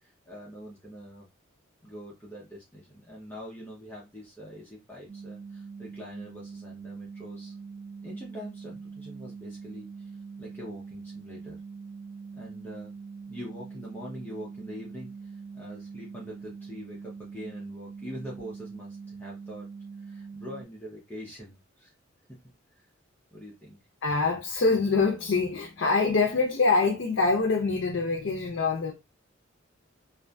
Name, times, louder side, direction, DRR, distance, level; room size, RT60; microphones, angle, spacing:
voice 1, 0.0-1.3 1.8-7.6 8.0-11.6 12.3-12.9 13.3-19.7 20.0-21.9 22.7-22.9 23.3-23.8, equal, 10° left, 0.6 m, -44 dB
sound 1, 5.1-20.6, right 5 dB, 40° right, 0.6 m, -43 dB
voice 2, 24.0-28.9, left 4 dB, 65° left, 0.5 m, -25 dB
2.5 x 2.5 x 2.2 m
head